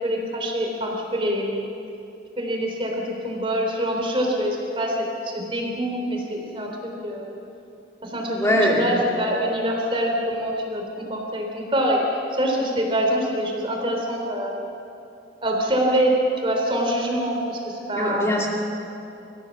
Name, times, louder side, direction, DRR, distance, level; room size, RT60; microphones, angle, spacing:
voice 1, 0.0-1.5 2.4-5.0 5.2-7.3 8.0-14.6 15.4-18.3, equal, 30° right, 0 dB, 3.7 m, -25 dB
voice 2, 8.3-8.9 17.9-18.5, left 1 dB, 15° left, -3 dB, 2.3 m, -21 dB
25.0 x 15.0 x 7.4 m, 2.8 s
head